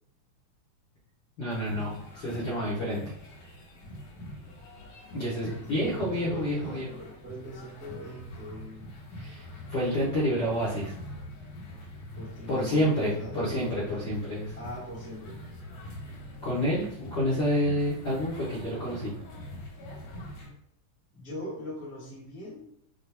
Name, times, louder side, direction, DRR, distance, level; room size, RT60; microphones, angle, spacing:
voice 1, 1.4-3.0 5.1-6.9 9.2-10.9 12.5-14.6 16.4-19.1, equal, 60° left, -8 dB, 1.1 m, -29 dB
sound 1, 1.5-20.5, left 1 dB, 80° left, 2.6 m, -44 dB
voice 2, 5.4-8.9 12.2-14.1 14.6-15.4 21.1-22.6, left 1 dB, 20° right, -9 dB, 0.3 m, -42 dB
6.1 x 2.4 x 3.4 m, 0.72 s
omnidirectional pair, 3.6 m